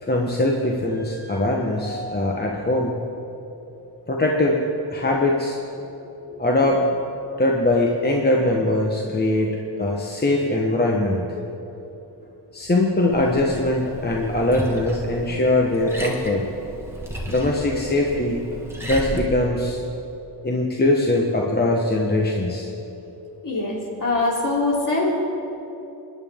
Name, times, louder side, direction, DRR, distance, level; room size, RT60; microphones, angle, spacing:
voice 1, 0.0-2.9 4.1-4.6 4.9-5.6 6.4-6.8 7.4-11.2 12.5-16.4 17.3-18.4 18.8-19.8 20.4-22.7, left 2 dB, 25° left, -1 dB, 1.0 m, -21 dB
Liquid, 13.1-19.3, right 1 dB, 5° right, 1.6 m, -34 dB
voice 2, 23.4-25.1, left 2 dB, 50° left, -4 dB, 3.4 m, -23 dB
25.0 x 10.5 x 3.6 m, 3.0 s
wide cardioid pair, 130°, 42 cm